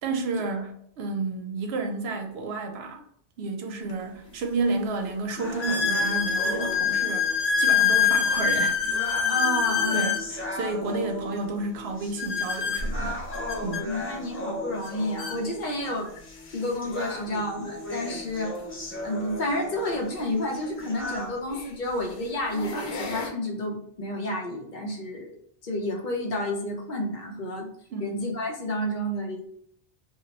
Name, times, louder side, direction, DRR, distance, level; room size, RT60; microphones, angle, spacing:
voice 1, 0.0-3.0 3.4-7.3 7.6-8.8 9.9-13.2 13.6-13.9 27.9-28.2, right 3 dB, 80° right, 0.8 m, -31 dB
sound 1, 3.9-4.0 4.6-4.7 5.6-10.3 12.2-13.8 14.8-14.9 15.2-15.4 16.2-16.3 18.5-18.6 20.7-20.8 21.5-21.8 22.3-23.3, left 6 dB, 90° left, 0.9 m, -25 dB
sound 2, 5.4-21.4, left 1 dB, 20° left, 0.4 m, -37 dB
voice 2, 9.3-10.2 13.8-16.1 16.5-18.6 19.0-25.3 25.6-27.7 28.0-29.4, left 1 dB, 55° left, 0.7 m, -30 dB
2.3 x 2.1 x 3.8 m
omnidirectional pair, 1.0 m